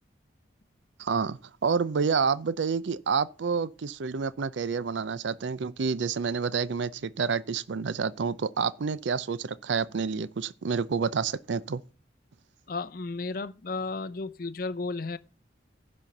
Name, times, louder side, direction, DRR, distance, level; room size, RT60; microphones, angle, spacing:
voice 1, 1.0-11.8, right 5 dB, 80° right, 0.5 m, -29 dB
voice 2, 12.7-15.2, left 3 dB, 50° left, 0.6 m, -33 dB
10.5 x 4.3 x 6.5 m
head